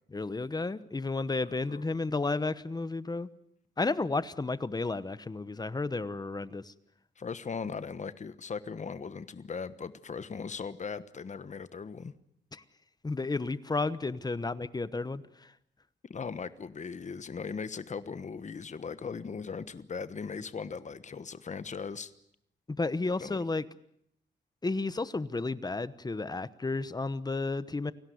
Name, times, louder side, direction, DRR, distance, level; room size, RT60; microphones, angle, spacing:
voice 1, 0.1-3.3 3.8-6.7 13.0-15.2 22.7-23.6 24.6-27.9, left 3 dB, 20° left, 15 dB, 1.0 m, -32 dB
voice 2, 1.4-1.8 7.2-12.1 16.1-22.1 23.2-23.4, left 5 dB, 40° left, 14 dB, 1.2 m, -39 dB
29.0 x 18.0 x 9.4 m, 0.74 s
wide cardioid pair, 145°, 19 cm